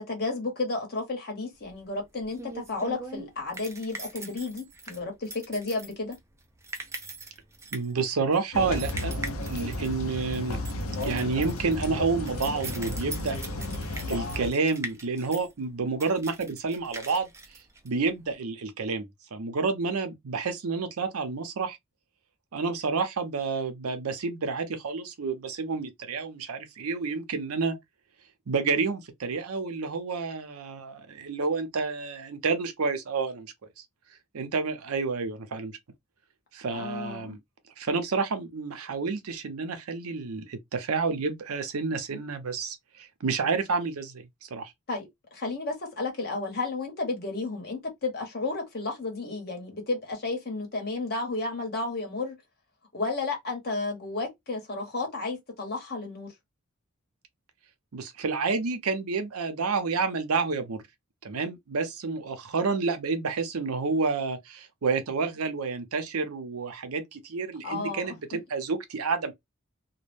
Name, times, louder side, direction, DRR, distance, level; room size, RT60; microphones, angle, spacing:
voice 1, 0.0-6.2 36.7-37.4 44.9-52.3 52.9-56.3 67.6-68.1, left 3 dB, 50° left, 1.0 m, -32 dB
sound 1, 1.6-18.3, right 3 dB, 15° right, 0.4 m, -42 dB
voice 2, 7.7-9.1 9.5-10.6 11.0-13.4 14.1-17.3 17.8-21.8 22.5-27.8 28.5-33.5 34.3-35.8 36.5-37.4 37.8-44.7 57.9-60.8 61.2-69.3, right 4 dB, 80° right, 0.6 m, -29 dB
sound 2, 8.5-14.5, left 1 dB, 75° left, 0.6 m, -33 dB
2.2 x 2.1 x 3.2 m
head